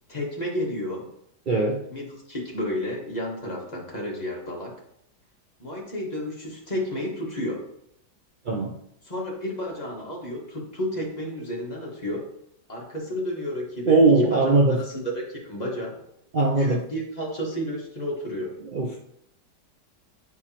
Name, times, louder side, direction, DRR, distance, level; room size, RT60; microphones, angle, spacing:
voice 1, 0.1-1.1 1.9-4.7 5.6-7.6 9.0-12.2 12.7-14.6 14.9-16.0 16.6-18.5, equal, 25° left, -2 dB, 1.5 m, -31 dB
voice 2, 1.5-1.8 8.4-8.8 13.9-14.8 16.3-16.8 18.6-19.0, right 3 dB, 70° right, -1 dB, 0.4 m, -20 dB
9.2 x 4.7 x 2.9 m, 0.74 s
omnidirectional pair, 1.8 m